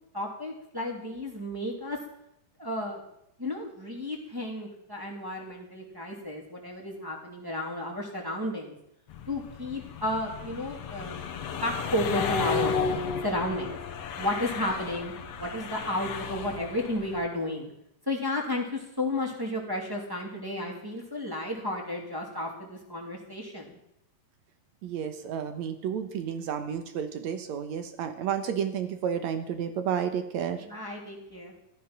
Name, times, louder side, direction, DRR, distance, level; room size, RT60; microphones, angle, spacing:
voice 1, 0.1-2.0 2.6-3.0 3.4-8.7 9.3-11.2 11.6-12.7 13.2-13.8 14.2-15.1 15.4-17.7 18.1-23.8 30.7-31.5, left 1 dB, 5° right, 0 dB, 2.2 m, -32 dB
sound 1, 9.1-17.3, left 5 dB, 60° left, 2.1 m, -34 dB
voice 2, 24.8-30.7, right 8 dB, 65° right, 8 dB, 2.1 m, -31 dB
13.5 x 13.0 x 6.0 m, 0.80 s
omnidirectional pair, 4.0 m